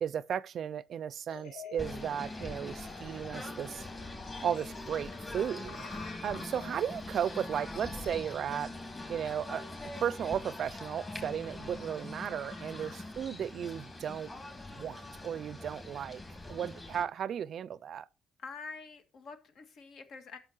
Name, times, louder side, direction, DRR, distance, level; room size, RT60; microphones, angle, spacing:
voice 1, 0.0-3.9 4.4-5.8 6.2-8.7 9.1-9.6 10.0-14.3 14.8-18.1, right 9 dB, 65° right, 0.4 m, -35 dB
sound 1, 1.3-15.5, left 5 dB, 85° left, 2.2 m, -52 dB
Singing / Bird, 1.8-17.0, left 2 dB, 25° left, 3.0 m, -43 dB
voice 2, 18.4-20.4, left 4 dB, 70° left, 1.9 m, -46 dB
12.0 x 6.4 x 4.6 m
cardioid pair, 90°, 0 cm